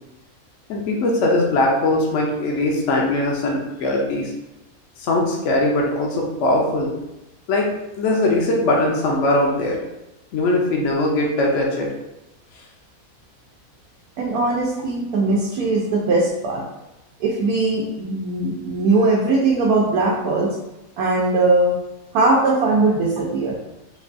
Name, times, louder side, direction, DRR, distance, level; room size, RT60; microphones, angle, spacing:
voice 1, 0.7-4.3 5.0-6.9 7.5-7.7 8.0-9.8 10.3-11.9, left 2 dB, 65° left, -1 dB, 0.8 m, -20 dB
voice 2, 14.2-16.6 17.2-20.5 21.0-21.7 22.1-23.6, right 3 dB, 85° right, -3 dB, 1.1 m, -20 dB
4.0 x 2.2 x 2.5 m, 0.93 s
omnidirectional pair, 1.6 m